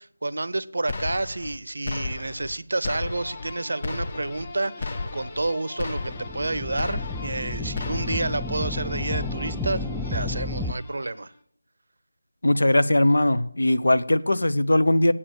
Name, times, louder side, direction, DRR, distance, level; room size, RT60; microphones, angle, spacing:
voice 1, 0.0-11.3, right 2 dB, 65° right, 0.6 m, -30 dB
sound 1, 0.9-1.6 1.9-2.6 2.8-3.5 3.8-4.5 4.8-5.5 5.8-6.5 6.8-7.5 7.8-8.4, left 3 dB, 40° left, 1.1 m, -33 dB
sound 2, 3.1-11.4, left 2 dB, 25° left, 2.1 m, -43 dB
sound 3, 6.0-10.7, left 2 dB, ahead, 0.4 m, -31 dB
voice 2, 12.4-15.1, left 1 dB, 70° left, 0.7 m, -20 dB
8.7 x 8.6 x 6.8 m
figure-of-eight pair, 165°, 0 cm